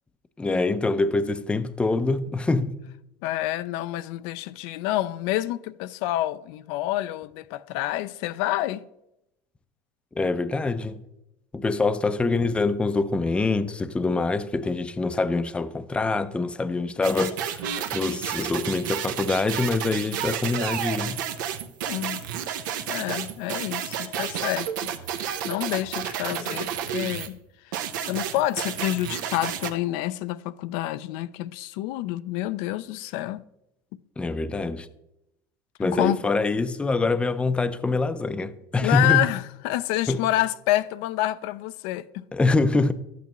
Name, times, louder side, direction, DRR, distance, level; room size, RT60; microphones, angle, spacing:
voice 1, 0.4-2.8 10.2-11.0 11.5-21.2 34.2-34.9 35.8-39.2 40.1-40.2 42.3-42.9, left 3 dB, 10° left, 0.5 m, -25 dB
voice 2, 3.2-8.8 21.9-22.2 22.9-27.4 27.6-33.4 35.9-36.2 38.8-42.2, left 15 dB, 70° left, 0.4 m, -28 dB
sound 1, 17.0-27.3 27.7-29.7, right 9 dB, 90° right, 0.8 m, -31 dB
12.0 x 8.4 x 3.0 m
supercardioid pair, 120°, 10 cm